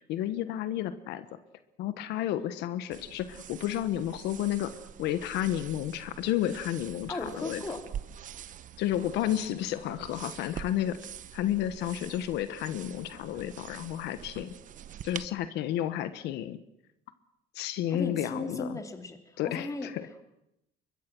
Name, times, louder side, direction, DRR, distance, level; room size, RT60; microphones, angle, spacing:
voice 1, 0.1-1.3 1.8-7.6 8.8-11.0 11.3-14.5 15.0-16.6 17.5-18.8 19.4-20.1, left 12 dB, 85° left, 12 dB, 1.2 m, -31 dB
sound 1, 2.9-15.3, right 10 dB, 50° right, 0.9 m, -45 dB
voice 2, 7.1-7.9 17.9-19.9, left 2 dB, 20° left, 6 dB, 3.1 m, -37 dB
24.5 x 22.0 x 6.2 m, 0.85 s
cardioid pair, 110°, 17 cm